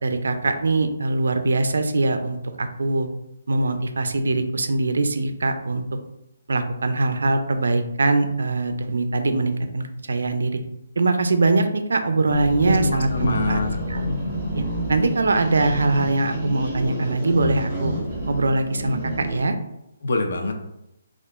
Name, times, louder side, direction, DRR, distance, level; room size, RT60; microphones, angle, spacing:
voice 1, 0.0-3.1 3.5-5.8 6.5-10.6 11.0-13.6 13.9-14.2 14.6-14.7 14.9-17.9 18.3-19.6, right 2 dB, 85° right, 8 dB, 0.4 m, -22 dB
sound 1, 12.3-19.5, equal, 5° right, 0.9 m, -29 dB
voice 2, 12.6-13.8 20.0-20.5, left 2 dB, 60° left, 4 dB, 0.5 m, -24 dB
2.8 x 2.4 x 3.4 m, 0.84 s
hypercardioid pair, 175°, 0 cm